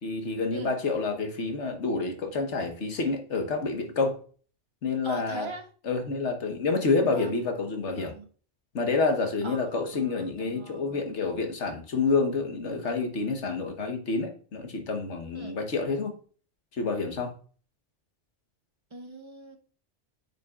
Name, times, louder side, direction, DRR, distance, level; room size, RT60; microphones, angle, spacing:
voice 1, 0.0-4.2 4.8-5.5 5.8-8.1 8.7-16.1 16.8-17.3, left 4 dB, 75° left, 1.5 m, -28 dB
voice 2, 5.0-5.6 7.1-7.3 7.9-8.3 9.4-11.0 15.3-15.6 18.9-19.6, right 3 dB, 25° right, 0.9 m, -41 dB
9.1 x 5.7 x 2.4 m
omnidirectional pair, 1.2 m